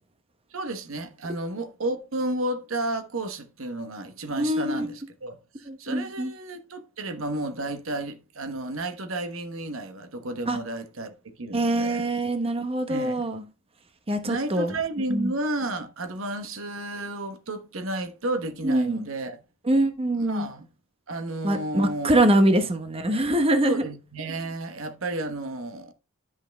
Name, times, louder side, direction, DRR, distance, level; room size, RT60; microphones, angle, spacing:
voice 1, 0.5-12.1 12.9-13.3 14.2-19.4 20.1-20.7 21.1-22.1 23.0-23.2 23.6-25.9, right 2 dB, 75° right, 1.1 m, -32 dB
voice 2, 4.4-4.9 5.7-6.3 10.5-10.6 11.5-13.4 14.1-14.7 15.1-15.3 18.6-19.0 19.7-20.5 21.4-23.8, right 1 dB, 30° right, 0.9 m, -23 dB
10.5 x 5.7 x 3.4 m
head